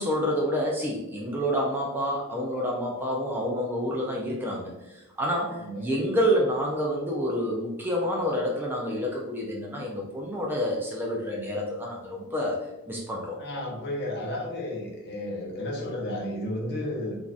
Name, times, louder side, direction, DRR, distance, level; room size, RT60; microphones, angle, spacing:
voice 1, 0.0-12.6 12.9-13.4, equal, 10° right, -2 dB, 0.4 m, -28 dB
voice 2, 5.6-5.9 13.4-17.2, left 1 dB, 50° left, -2 dB, 0.7 m, -32 dB
3.4 x 2.5 x 2.4 m, 0.95 s
head